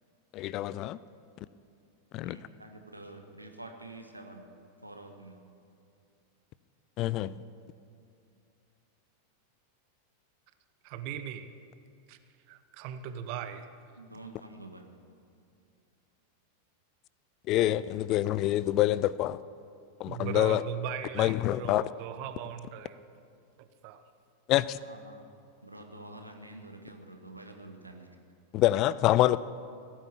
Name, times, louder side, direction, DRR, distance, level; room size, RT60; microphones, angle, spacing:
voice 1, 0.3-1.0 2.1-2.4 7.0-7.3 17.5-19.4 20.0-20.6 21.2-21.9 24.5-24.8 28.5-29.4, left 14 dB, 40° left, 18 dB, 0.3 m, -26 dB
voice 2, 2.2-4.4 4.8-5.4 14.0-14.9 24.8-25.3 25.6-28.2, right 2 dB, 85° right, 4 dB, 1.4 m, -47 dB
voice 3, 10.8-11.5 12.1-12.2 12.5-13.7 20.1-23.1 23.6-24.0, right 9 dB, 45° right, 10 dB, 0.8 m, -38 dB
16.5 x 8.9 x 7.1 m, 2.5 s
figure-of-eight pair, 90°, 0 cm